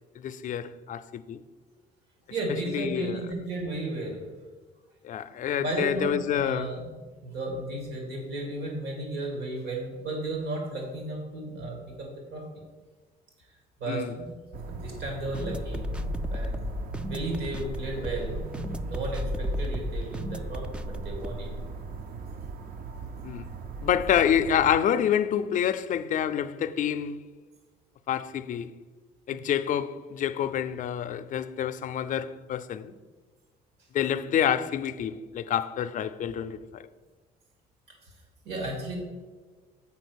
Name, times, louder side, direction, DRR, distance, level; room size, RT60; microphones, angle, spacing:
voice 1, 0.2-1.4 2.7-3.2 5.0-6.7 13.9-14.1 23.2-23.5 23.8-27.2 28.1-28.7 29.3-33.0 33.9-36.8, left 9 dB, 50° left, 0.5 m, -27 dB
voice 2, 2.3-4.2 5.6-6.9 7.2-12.4 13.8-14.3 14.6-16.7 17.1-18.4 18.8-21.5 38.4-38.9, right 2 dB, 80° right, 2.5 m, -34 dB
sound 1, 14.5-24.8, right 4 dB, 60° right, 0.7 m, -39 dB
sound 2, 15.3-21.7, left 1 dB, 5° right, 0.3 m, -34 dB
7.3 x 4.9 x 6.3 m
cardioid pair, 110°, 17 cm